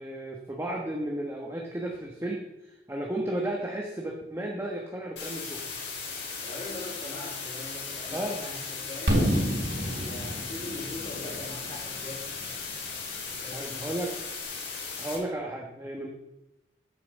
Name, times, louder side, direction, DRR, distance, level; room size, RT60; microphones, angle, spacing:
voice 1, 0.0-5.6 8.1-8.4 13.5-14.1 15.0-16.1, right 1 dB, 15° right, -1 dB, 1.2 m, -34 dB
sound 1, 5.2-15.2, left 5 dB, 80° left, 3.7 m, -37 dB
voice 2, 6.4-12.4 13.3-14.2, left 2 dB, 35° left, -3 dB, 4.0 m, -42 dB
Fireworks, 9.1-12.9, equal, 80° right, 3.8 m, -29 dB
10.5 x 5.8 x 7.2 m, 0.94 s
head